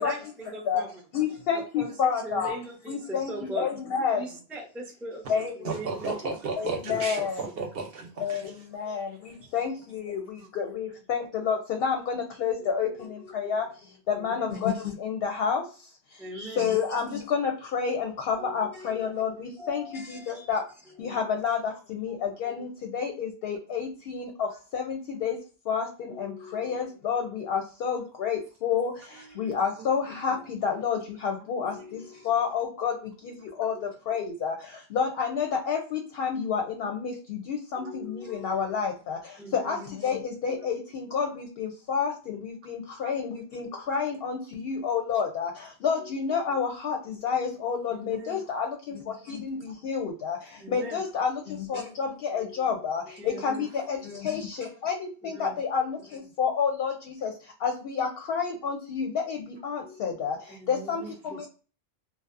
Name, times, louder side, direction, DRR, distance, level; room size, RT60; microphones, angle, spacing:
voice 1, 0.0-0.9 1.5-3.7 4.1-5.3 5.6-6.1 7.8-7.9 8.8-9.0 12.6-12.9 14.1-14.6 16.2-16.8 18.4-19.1 19.6-20.5 21.0-21.2 22.1-22.2 26.1-26.8 27.9-28.1 29.1-29.7 30.3-30.5 31.6-32.2 33.2-33.6 37.8-38.6 39.4-39.8 40.6-40.7 43.0-43.3 46.0-46.6 47.9-48.4 49.6-49.8 50.6-51.0 52.3-53.6 54.1-54.2 55.3-55.6 59.8-60.3 60.6-61.5, right 1 dB, ahead, 0 dB, 0.3 m, -42 dB
voice 2, 1.1-2.5 2.9-4.2 5.3-5.7 6.1-6.2 6.6-7.5 8.2-15.7 16.1-16.3 16.6-20.6 21.0-25.4 25.6-61.5, left 6 dB, 65° left, 4 dB, 0.7 m, -30 dB
voice 3, 5.6-8.5 10.4-10.5 29.8-29.9 43.0-43.1, right 4 dB, 65° right, 4 dB, 0.7 m, -34 dB
2.7 x 2.0 x 2.4 m, 0.36 s
omnidirectional pair, 1.2 m